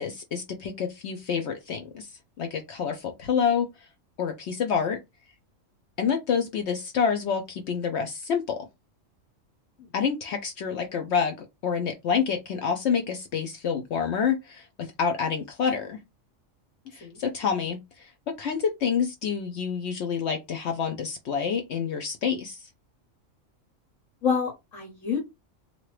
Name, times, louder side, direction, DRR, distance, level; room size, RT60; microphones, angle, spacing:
voice 1, 0.0-2.1 2.4-3.7 4.2-5.0 6.0-8.6 9.9-16.0 16.9-22.6, left 6 dB, 65° left, 0.8 m, -28 dB
voice 2, 24.2-25.2, left 6 dB, 90° left, 1.5 m, -28 dB
2.8 x 2.4 x 3.1 m
omnidirectional pair, 1.3 m